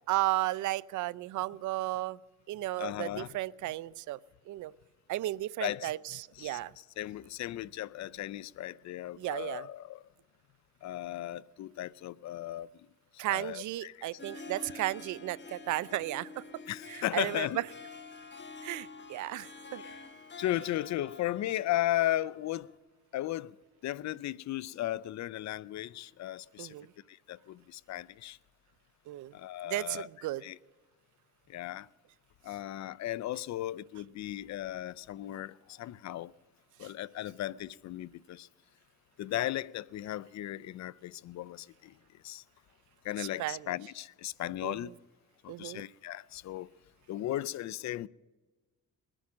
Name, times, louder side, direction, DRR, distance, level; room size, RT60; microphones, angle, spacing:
voice 1, 0.1-2.2 2.5-4.2 4.5-4.7 5.1-6.7 9.2-9.7 13.2-16.4 16.9-17.6 18.6-19.8 26.6-26.9 29.1-29.3 29.6-30.4 36.8-36.9 43.2-43.7 44.6-44.9 45.5-45.8, right 16 dB, 75° right, 0.5 m, -34 dB
voice 2, 2.8-3.3 5.6-5.9 6.4-6.6 7.0-10.0 10.8-12.7 13.3-14.1 16.7-17.6 19.8-20.0 20.4-22.7 23.1-23.6 23.8-26.7 27.1-28.4 29.3-30.1 30.4-30.6 31.5-31.9 32.4-36.3 36.8-38.5 39.2-41.9 42.2-42.4 43.0-44.9 45.4-46.7 47.1-48.1, left 14 dB, 65° left, 0.5 m, -36 dB
Harp, 14.0-22.8, left 3 dB, 40° left, 1.7 m, -48 dB
21.0 x 10.0 x 6.2 m
cardioid pair, 90°, 30 cm